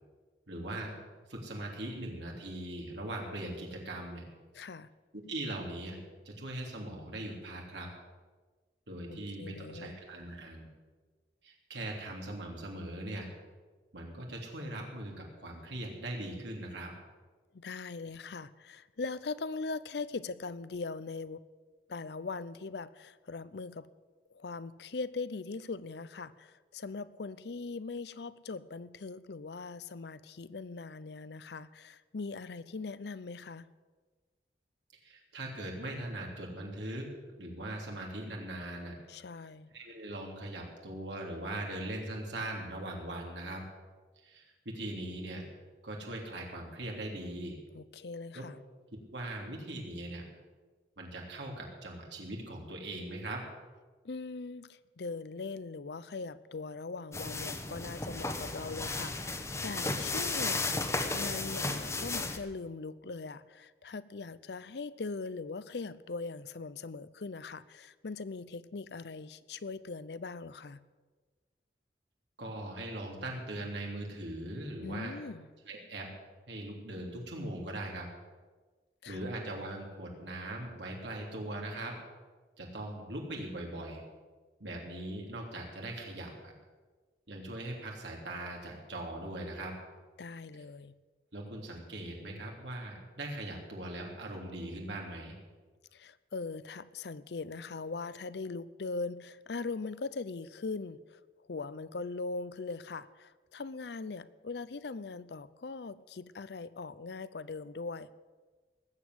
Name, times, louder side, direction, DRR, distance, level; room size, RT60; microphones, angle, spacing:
voice 1, 0.5-0.9 1.3-4.2 5.3-6.0 6.2-7.9 8.9-10.7 11.4-13.3 13.9-16.9 35.0-37.1 37.4-38.9 39.7-43.6 44.2-45.4 45.8-47.6 48.3-48.5 49.1-50.2 51.0-53.4 72.4-75.1 75.6-76.1 76.5-78.1 79.1-81.9 82.6-84.0 84.6-86.5 87.3-89.8 91.3-95.4, right 1 dB, 85° right, 0 dB, 3.2 m, -40 dB
voice 2, 4.5-4.9 9.1-9.9 17.5-21.4 21.9-23.9 24.3-33.7 39.1-39.7 47.7-48.6 54.0-60.6 61.1-70.8 74.8-75.5 79.0-79.3 90.2-90.9 95.9-101.2 101.5-108.1, left 4 dB, 70° left, 17 dB, 0.6 m, -40 dB
sound 1, 57.1-62.4, left 3 dB, 15° left, 1.0 m, -34 dB
19.5 x 8.3 x 7.8 m, 1.4 s
head